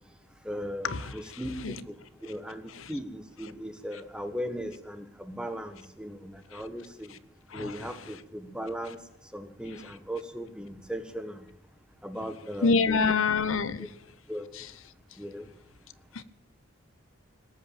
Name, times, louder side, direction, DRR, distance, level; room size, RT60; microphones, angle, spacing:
voice 1, 0.4-7.1 7.5-9.0 9.3-11.5 12.0-13.1 13.8-13.9 14.3-14.5 15.2-15.5, equal, 5° right, 8 dB, 1.3 m, -38 dB
voice 2, 1.3-1.8 2.8-2.9 6.5-6.6 7.5-7.9 12.6-13.9 14.6-14.7 16.1-16.2, left 4 dB, 85° left, 15 dB, 0.9 m, -27 dB
19.0 x 8.7 x 8.8 m, 0.78 s
head